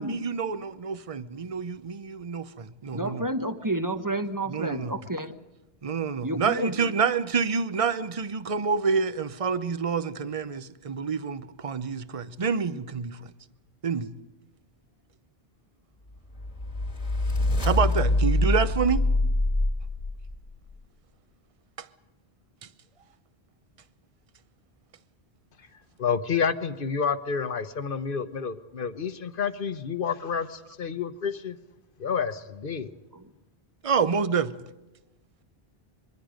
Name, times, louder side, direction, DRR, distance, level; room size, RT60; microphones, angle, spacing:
voice 1, 0.0-3.3 4.5-4.9 5.8-13.2 13.8-14.2 17.6-19.1 33.8-34.6, right 5 dB, 35° right, 0.8 m, -27 dB
voice 2, 2.9-5.3 6.2-6.9 33.1-33.3, right 1 dB, 20° right, 1.1 m, -30 dB
sound 1, 16.3-20.6, left 2 dB, 35° left, 1.7 m, -25 dB
voice 3, 26.0-31.6 32.0-32.9, left 6 dB, 55° left, 1.2 m, -29 dB
26.0 x 23.0 x 5.1 m
omnidirectional pair, 1.1 m